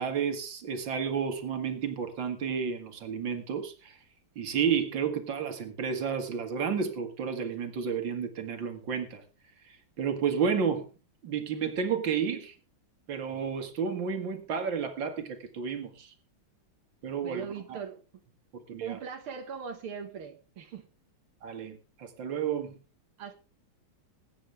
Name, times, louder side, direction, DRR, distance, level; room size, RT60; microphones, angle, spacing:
voice 1, 0.0-4.0 4.4-9.2 10.0-10.9 11.2-12.5 13.1-16.1 17.0-17.4 17.7-17.8 18.5-19.0 21.4-22.8, right 6 dB, 65° right, 2.6 m, -31 dB
voice 2, 17.2-18.0 18.8-20.9 23.2-23.3, right 7 dB, 85° right, 2.4 m, -39 dB
21.5 x 9.3 x 3.4 m
omnidirectional pair, 2.3 m